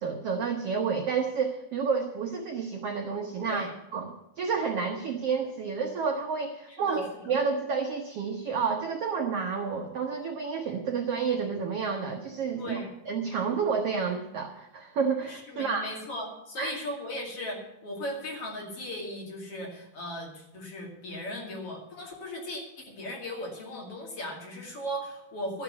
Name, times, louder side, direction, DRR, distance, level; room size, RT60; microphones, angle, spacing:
voice 1, 0.0-3.7 3.9-12.8 13.1-15.9 16.6-16.7, right 5 dB, 85° right, 3 dB, 1.3 m, -30 dB
voice 2, 3.4-3.7 6.7-7.3 12.6-12.9 15.3-25.6, left 1 dB, 40° left, 0 dB, 3.1 m, -37 dB
13.0 x 7.0 x 9.4 m, 0.88 s
omnidirectional pair, 4.3 m